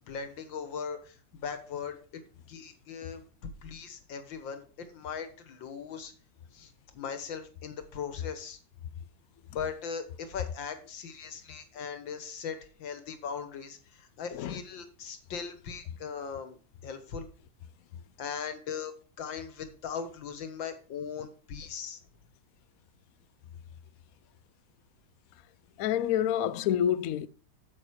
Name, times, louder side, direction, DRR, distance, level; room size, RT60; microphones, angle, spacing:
voice 1, 0.1-2.0 2.5-3.2 3.6-4.6 4.9-6.1 6.5-8.6 9.5-16.6 16.8-17.3 18.2-18.9 19.2-22.0, left 6 dB, 85° left, 2.1 m, -39 dB
voice 2, 25.8-27.3, left 10 dB, 70° left, 0.8 m, -28 dB
8.8 x 7.3 x 4.6 m
omnidirectional pair, 2.0 m